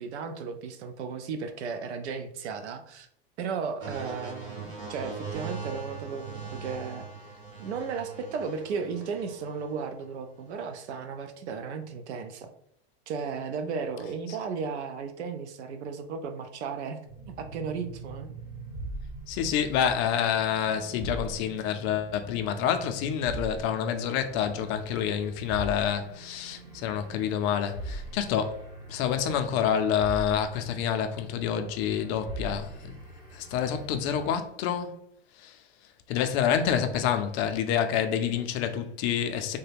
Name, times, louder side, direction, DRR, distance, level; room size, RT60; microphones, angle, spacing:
voice 1, 0.0-3.1 3.4-12.5 13.1-17.0 17.3-18.3, right 5 dB, 85° right, 0.6 m, -35 dB
sound 1, 3.8-9.8 10.6-10.8, right 4 dB, 45° right, 1.3 m, -41 dB
sound 2, 17.0-34.4, right 2 dB, 15° right, 0.7 m, -42 dB
voice 2, 19.3-28.6 28.9-32.9 33.3-34.9 35.4-35.6 36.1-39.6, left 8 dB, 40° left, 0.4 m, -28 dB
3.2 x 2.2 x 3.3 m
supercardioid pair, 125°, 33 cm